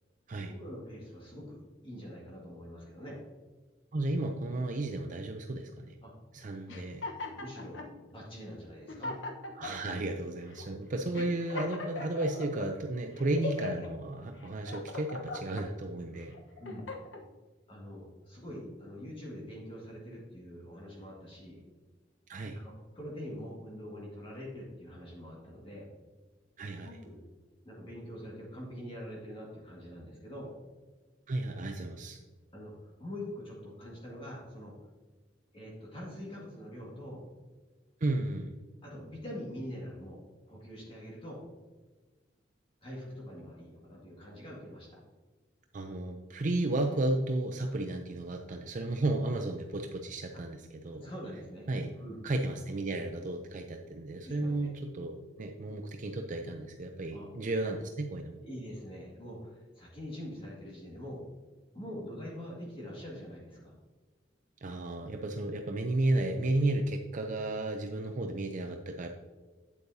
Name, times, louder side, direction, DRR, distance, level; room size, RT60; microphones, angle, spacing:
voice 1, 0.5-3.2 6.0-6.1 7.3-9.2 16.6-16.9 17.7-21.6 22.5-25.9 26.8-27.2 27.6-30.5 32.5-34.7 35.5-37.3 38.8-40.2 40.5-41.4 42.8-45.0 51.0-52.2 54.2-54.7 57.1-57.3 58.4-61.2 61.7-63.7, equal, 30° left, -4 dB, 1.9 m, -44 dB
voice 2, 3.9-5.9 6.3-7.0 9.6-16.3 22.3-22.6 26.6-26.9 31.3-32.2 38.0-38.5 45.7-51.0 51.7-51.9 52.2-58.4 64.6-69.1, right 2 dB, 45° right, 4 dB, 0.5 m, -33 dB
sound 1, 6.7-7.9 8.5-8.6 8.9-9.9 10.5-10.7 11.1-12.7 13.2-13.9 14.4-15.7 16.2-17.2, left 3 dB, 85° left, 1.1 m, -39 dB
8.6 x 8.3 x 2.7 m, 1.3 s
head